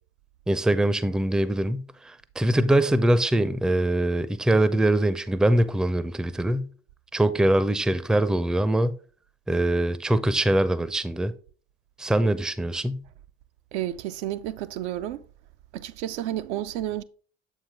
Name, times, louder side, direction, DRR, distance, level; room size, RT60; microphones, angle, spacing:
voice 1, 0.5-6.7 7.1-8.9 9.5-11.3 12.0-13.0, right 1 dB, ahead, 0.5 m, -23 dB
voice 2, 13.7-15.2 15.7-17.0, right 13 dB, 65° right, 0.5 m, -31 dB
7.3 x 5.1 x 3.5 m
figure-of-eight pair, 50°, 36 cm